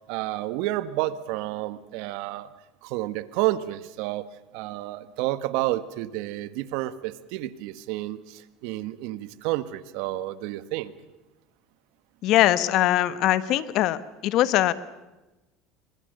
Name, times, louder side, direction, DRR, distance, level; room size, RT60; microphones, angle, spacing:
voice 1, 0.1-2.5 2.8-4.3 4.5-10.9, right 16 dB, 70° right, 14 dB, 1.4 m, -30 dB
voice 2, 12.2-14.0 14.2-14.7, left 14 dB, 55° left, 15 dB, 1.3 m, -21 dB
28.0 x 25.0 x 6.7 m, 1.1 s
supercardioid pair, 110°, 0 cm